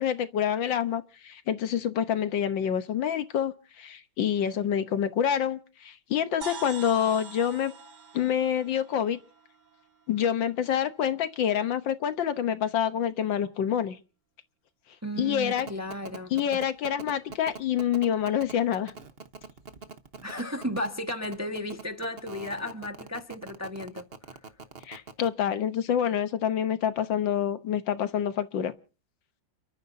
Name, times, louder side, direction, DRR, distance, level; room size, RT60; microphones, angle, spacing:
voice 1, 0.0-7.7 8.1-9.2 10.1-14.0 15.2-15.7 16.3-18.9 24.9-28.7, left 9 dB, 75° left, 1.7 m, -27 dB
sound 1, 6.4-10.2, right 5 dB, 60° right, 1.8 m, -44 dB
voice 2, 15.0-16.6 20.2-24.4, left 1 dB, 10° right, 1.1 m, -34 dB
sound 2, 15.6-25.3, right 5 dB, 40° right, 1.1 m, -42 dB
30.0 x 13.5 x 2.7 m
omnidirectional pair, 2.1 m